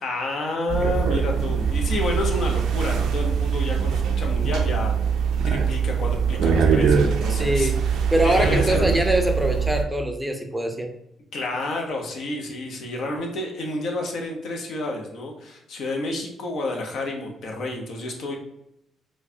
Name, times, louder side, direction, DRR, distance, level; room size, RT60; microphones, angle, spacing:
voice 1, 0.0-4.9 5.4-7.9 8.2-8.9 11.3-18.4, left 2 dB, 70° left, 1 dB, 0.8 m, -30 dB
sound 1, 0.7-9.8, right 6 dB, 80° right, 0.4 m, -22 dB
voice 2, 7.4-7.8 8.1-10.9, right 1 dB, 5° right, 4 dB, 0.5 m, -23 dB
4.7 x 2.3 x 2.7 m, 0.80 s
cardioid pair, 90°, 0 cm